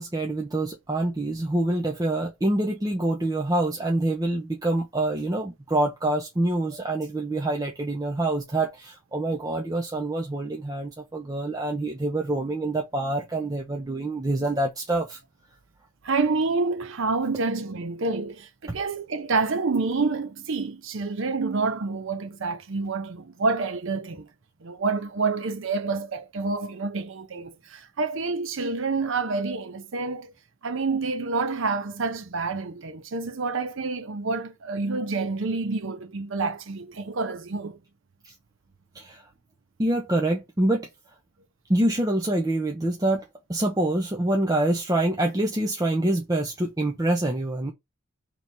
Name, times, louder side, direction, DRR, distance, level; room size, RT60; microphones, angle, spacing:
voice 1, 0.0-15.2 38.2-38.3 38.9-39.2 39.8-40.9 41.7-47.7, right 1 dB, 15° right, 0.6 m, -26 dB
voice 2, 16.0-24.3 24.6-30.3 30.6-37.8, right 3 dB, 60° right, 0.6 m, -28 dB
3.3 x 3.0 x 4.0 m
head